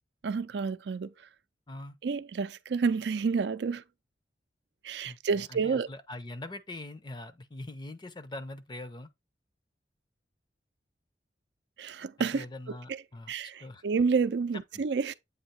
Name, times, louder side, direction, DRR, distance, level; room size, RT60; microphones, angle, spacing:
voice 1, 0.2-1.1 2.0-3.8 4.8-5.9 11.8-13.0 13.3-15.1, right 5 dB, 80° right, 0.4 m, -30 dB
voice 2, 5.0-9.1 12.2-13.3 13.6-13.8 14.7-14.8, left 2 dB, 25° left, 0.6 m, -43 dB
8.0 x 2.8 x 4.3 m
head